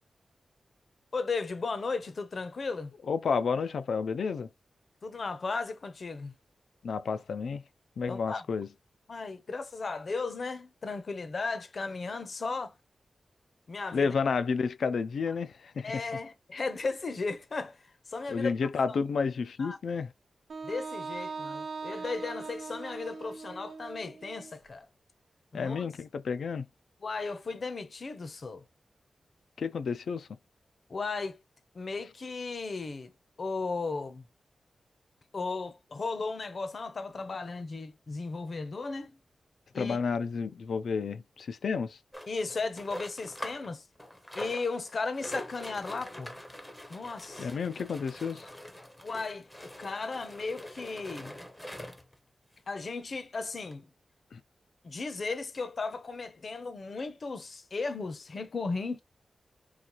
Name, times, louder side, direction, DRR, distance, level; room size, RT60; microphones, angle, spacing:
voice 1, 1.1-2.9 5.0-6.3 8.1-8.4 9.1-12.7 13.7-14.1 15.8-17.8 18.1-18.5 19.6-19.8 20.6-24.9 25.5-25.8 27.0-28.6 30.9-31.4 31.7-33.1 33.4-34.2 35.3-39.2 39.7-40.0 42.3-43.8 44.3-46.3 46.9-47.5 49.0-51.4 52.7-53.9 54.8-59.0, left 4 dB, 50° left, 0.6 m, -35 dB
voice 2, 3.1-4.5 6.8-7.6 8.0-8.7 13.9-16.0 18.3-20.1 25.5-26.6 29.6-30.3 39.7-42.0 47.4-48.5 54.3-54.4, left 5 dB, 90° left, 0.4 m, -31 dB
Wind instrument woodwind instrument, 20.5-24.5, right 4 dB, 75° right, 0.5 m, -40 dB
sound 1, 42.1-43.7 44.0-52.2 52.8-52.9 53.1-53.2 53.7-53.8, left 1 dB, 10° left, 0.6 m, -44 dB
4.0 x 2.5 x 2.9 m
wide cardioid pair, 150°, 0 cm